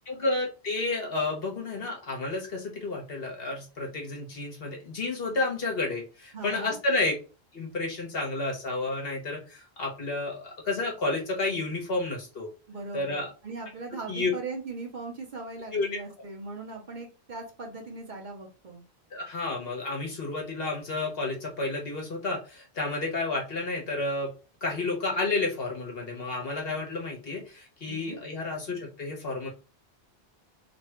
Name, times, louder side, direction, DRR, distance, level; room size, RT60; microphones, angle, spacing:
voice 1, 0.1-7.1 7.5-12.5 12.9-13.3 14.1-14.3 15.7-16.0 19.1-24.3 24.6-29.5, left 2 dB, 60° left, 0 dB, 1.4 m, -31 dB
voice 2, 6.3-6.8 12.7-18.8 27.9-28.2, right 3 dB, 50° right, 1 dB, 0.9 m, -39 dB
3.2 x 2.3 x 4.3 m, 0.33 s
omnidirectional pair, 1.1 m